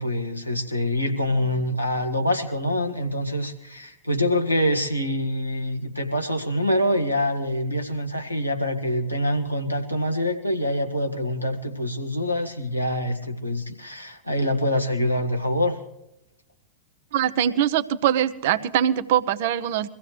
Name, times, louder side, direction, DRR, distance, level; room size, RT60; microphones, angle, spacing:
voice 1, 0.0-15.8, left 1 dB, 90° left, 2 dB, 1.8 m, -25 dB
voice 2, 17.1-19.9, right 10 dB, 55° right, 12 dB, 0.8 m, -22 dB
23.0 x 15.5 x 3.3 m, 0.83 s
figure-of-eight pair, 90°, 0 cm